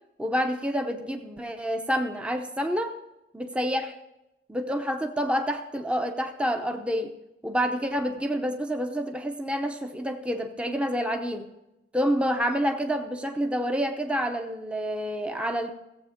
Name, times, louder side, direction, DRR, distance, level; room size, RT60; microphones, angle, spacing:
voice 1, 0.2-3.0 3.3-3.8 4.5-7.1 7.4-11.5 11.9-15.7, equal, 5° right, 5 dB, 0.7 m, -28 dB
16.0 x 7.8 x 5.1 m, 0.92 s
head